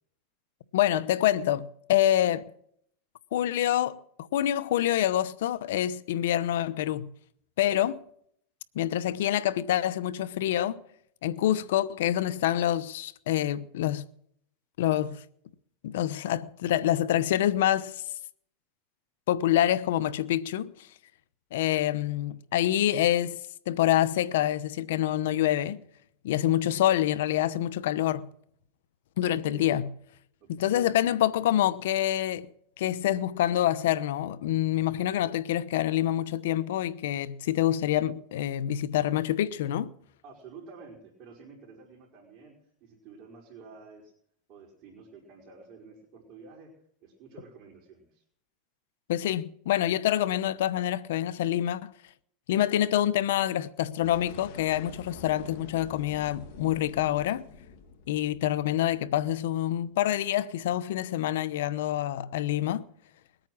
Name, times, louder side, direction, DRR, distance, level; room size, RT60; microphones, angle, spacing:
voice 1, 0.7-2.4 3.3-4.0 4.3-7.1 7.6-8.0 8.7-10.8 11.2-14.0 14.8-15.2 15.8-18.0 19.3-20.7 21.5-23.4 23.7-25.8 26.2-28.3 29.2-29.9 30.5-32.5 32.8-39.9 49.1-51.9 52.5-57.4 58.1-62.8, left 12 dB, 80° left, 0.9 m, -26 dB
voice 2, 29.2-29.8 30.4-30.9 40.2-42.5 42.8-44.1 44.5-46.7 47.0-48.2, right 5 dB, 45° right, 4.8 m, -49 dB
sound 1, 54.0-59.2, left 5 dB, 60° left, 3.1 m, -47 dB
21.0 x 9.1 x 6.2 m
supercardioid pair, 120°, 0 cm